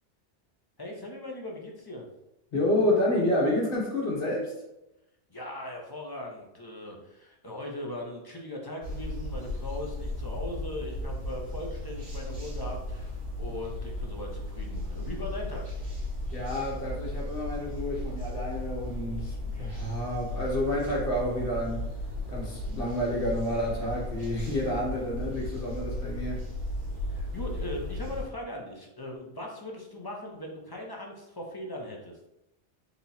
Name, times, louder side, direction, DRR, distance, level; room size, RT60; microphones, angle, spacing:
voice 1, 0.8-2.1 5.3-13.1 13.4-15.6 27.1-32.1, left 1 dB, 25° left, -1 dB, 0.7 m, -39 dB
voice 2, 2.5-4.5 16.3-21.8 22.3-26.4, left 1 dB, 55° left, -4 dB, 1.5 m, -29 dB
sound 1, 8.8-28.2, left 1 dB, 60° right, 1.7 m, -35 dB
4.1 x 2.9 x 4.2 m, 0.89 s
omnidirectional pair, 1.2 m